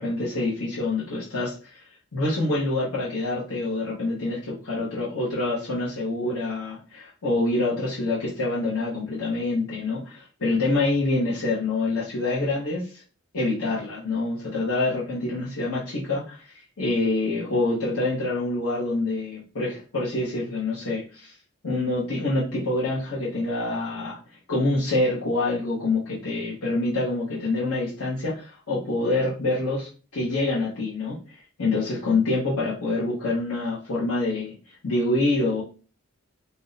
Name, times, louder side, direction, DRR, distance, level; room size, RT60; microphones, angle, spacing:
voice 1, 0.0-1.8 2.1-13.0 13.3-21.3 21.6-24.2 24.5-34.6 34.8-35.6, left 2 dB, 80° left, -8 dB, 0.9 m, -26 dB
2.7 x 2.1 x 3.9 m, 0.37 s
head